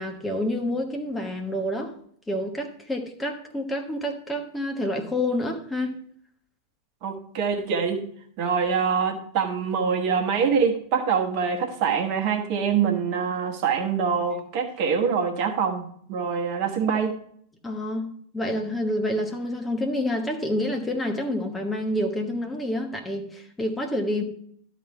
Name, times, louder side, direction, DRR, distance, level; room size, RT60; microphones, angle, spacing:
voice 1, 0.0-1.9 2.3-6.0 17.6-18.1 18.3-24.2, left 1 dB, 10° left, 1.2 m, -28 dB
voice 2, 7.0-8.1 8.4-17.2, right 6 dB, 45° right, 1.3 m, -25 dB
12.5 x 4.2 x 5.5 m
figure-of-eight pair, 90°, 0 cm